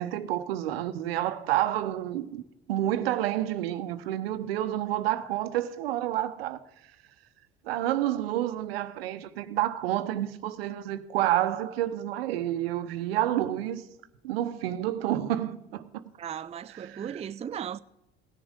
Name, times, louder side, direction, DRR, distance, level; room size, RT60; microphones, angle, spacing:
voice 1, 0.0-2.4 2.7-6.6 7.6-13.8 14.2-16.0 16.9-17.1, right 13 dB, 80° right, 1.0 m, -29 dB
voice 2, 16.2-17.8, right 8 dB, 20° right, 0.5 m, -36 dB
17.0 x 10.5 x 3.7 m
hypercardioid pair, 70°, 30 cm